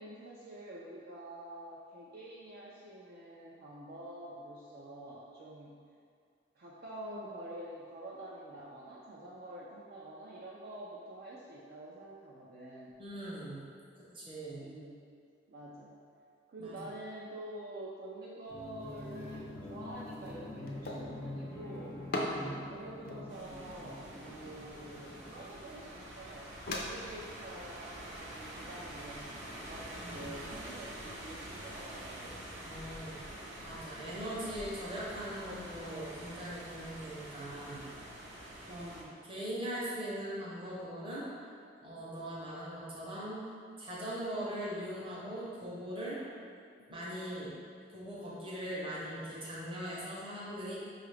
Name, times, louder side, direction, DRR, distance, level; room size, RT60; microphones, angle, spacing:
voice 1, 0.0-5.7 6.6-12.9 14.6-15.0 15.5-15.9 16.5-22.0 22.7-32.4 38.7-39.2, right 1 dB, 50° right, -6 dB, 0.3 m, -47 dB
voice 2, 13.0-13.7 14.0-14.7 16.6-16.8 22.1-22.7 30.0-30.3 32.6-33.2 33.6-37.9 38.6-41.5 41.8-43.4 43.8-46.2 46.9-47.5 47.9-50.8, right 1 dB, 25° right, -6 dB, 0.7 m, -41 dB
sound 1, 18.5-26.0, left 1 dB, 85° left, 0.8 m, -46 dB
sound 2, 18.6-26.8, left 1 dB, 50° left, 0.4 m, -44 dB
sound 3, 23.3-39.0, right 1 dB, 85° right, 0.6 m, -46 dB
4.7 x 2.4 x 3.2 m, 2.2 s
head